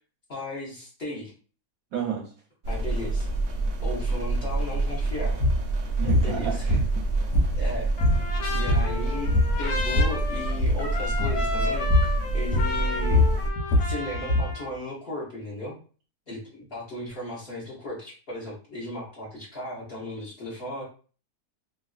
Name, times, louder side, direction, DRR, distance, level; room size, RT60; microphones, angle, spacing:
voice 1, 0.3-1.3 2.7-3.3 3.8-5.4 6.2-6.5 7.5-7.9 8.5-9.3 9.6-13.3 13.8-15.8 16.3-20.8, left 1 dB, 40° left, -6 dB, 1.0 m, -36 dB
voice 2, 1.9-2.3 6.0-6.9, right 8 dB, 70° right, 1 dB, 0.9 m, -31 dB
sound 1, 2.6-13.5, right 2 dB, 85° right, 0.5 m, -27 dB
sound 2, 5.4-5.6 6.1-6.3 6.7-7.7 8.0-8.2 8.5-9.0 9.3-10.2 10.5-10.8 11.2-11.4 11.9-12.2 12.5-14.5, left 2 dB, 90° left, 1.3 m, -22 dB
Trumpet, 8.0-14.7, left 3 dB, 65° left, 0.7 m, -33 dB
3.0 x 2.5 x 2.4 m, 0.39 s
omnidirectional pair, 1.8 m